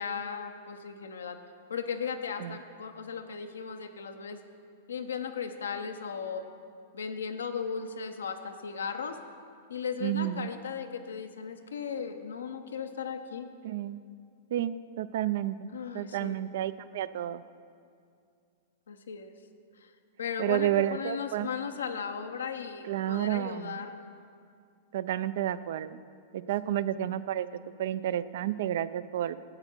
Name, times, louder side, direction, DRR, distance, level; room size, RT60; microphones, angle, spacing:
voice 1, 0.0-1.4 1.7-4.4 4.9-6.4 6.9-9.2 9.7-13.5 15.7-16.4 18.9-19.3 19.8-19.9 20.2-23.9 26.6-26.8, left 6 dB, 90° left, 7 dB, 0.7 m, -36 dB
voice 2, 10.0-10.5 13.6-14.0 14.5-15.7 15.9-17.4 20.4-21.5 22.8-23.8 24.9-26.0 26.3-27.5 27.8-29.4, right 12 dB, 70° right, 15 dB, 0.3 m, -31 dB
11.5 x 7.9 x 4.4 m, 2.3 s
hypercardioid pair, 120°, 0 cm